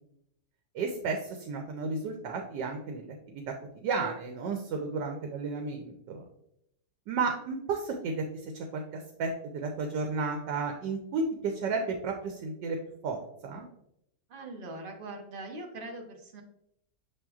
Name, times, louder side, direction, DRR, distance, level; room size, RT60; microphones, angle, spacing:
voice 1, 0.7-3.4 3.7-6.2 7.1-12.8 13.0-13.7, right 4 dB, 90° right, 3 dB, 1.3 m, -33 dB
voice 2, 14.3-16.4, right 2 dB, 70° right, 2 dB, 0.5 m, -42 dB
7.0 x 2.9 x 2.3 m, 0.76 s
omnidirectional pair, 1.8 m